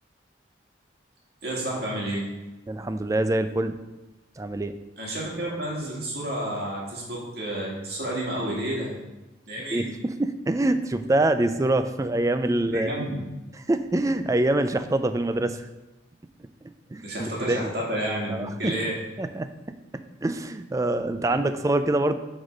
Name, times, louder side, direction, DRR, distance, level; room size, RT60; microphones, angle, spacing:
voice 1, 1.4-2.3 5.0-8.9 9.5-10.0 12.7-13.2 17.0-19.0 21.3-21.4, right 1 dB, 55° right, -4 dB, 2.0 m, -30 dB
voice 2, 2.7-3.8 4.4-4.8 9.7-13.0 13.5-15.7 16.9-17.7 18.3-18.7 19.2-19.5 20.2-22.1, right 2 dB, 15° right, 10 dB, 0.3 m, -25 dB
7.8 x 4.2 x 5.1 m, 1.0 s
head